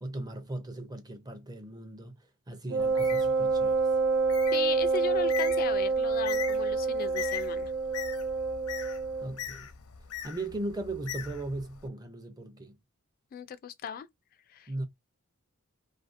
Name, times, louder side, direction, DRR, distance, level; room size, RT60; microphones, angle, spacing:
voice 1, 0.0-2.2 2.5-3.9 9.2-9.7 10.2-12.8 14.7-14.9, right 2 dB, 20° right, 0.6 m, -38 dB
Wind instrument woodwind instrument, 2.7-9.3, right 4 dB, 85° right, 0.5 m, -27 dB
Bird, 2.8-11.9, left 9 dB, 80° left, 0.6 m, -41 dB
voice 2, 4.5-7.7 13.3-14.1 14.5-14.8, left 7 dB, 40° left, 0.3 m, -37 dB
2.8 x 2.5 x 2.4 m
head